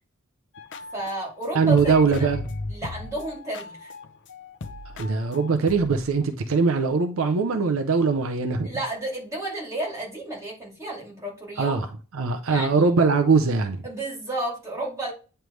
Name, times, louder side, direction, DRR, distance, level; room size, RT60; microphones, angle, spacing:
sound 1, 0.5-1.5 1.8-6.1, left 3 dB, 60° left, 0.6 m, -37 dB
voice 1, 0.9-2.3 2.7-3.9 8.6-11.8 12.5-12.9 13.8-15.1, right 2 dB, 15° right, 2.7 m, -32 dB
voice 2, 1.5-2.4 4.9-8.7 11.6-11.9 12.1-13.8, right 4 dB, 75° right, 0.6 m, -21 dB
9.0 x 3.3 x 3.1 m
head